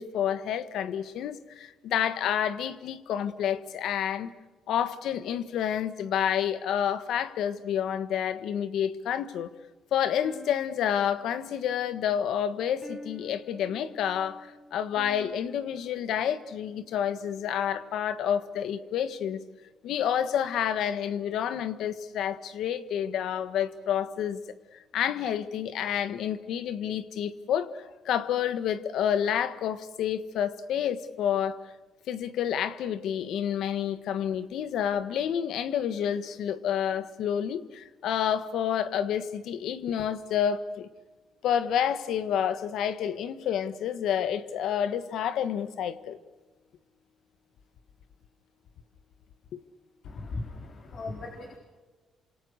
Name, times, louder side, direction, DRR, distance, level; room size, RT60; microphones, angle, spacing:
voice 1, 0.0-4.3 4.7-9.5 9.9-19.4 19.8-24.4 24.9-31.6 32.1-40.9 41.4-46.2 49.5-49.6, left 9 dB, 80° left, 1.5 m, -29 dB
sound 1, 10.2-17.4, equal, ahead, 3.9 m, -50 dB
voice 2, 50.0-51.6, left 2 dB, 50° left, 4.2 m, -38 dB
29.0 x 27.0 x 6.6 m
cardioid pair, 110°, 0 cm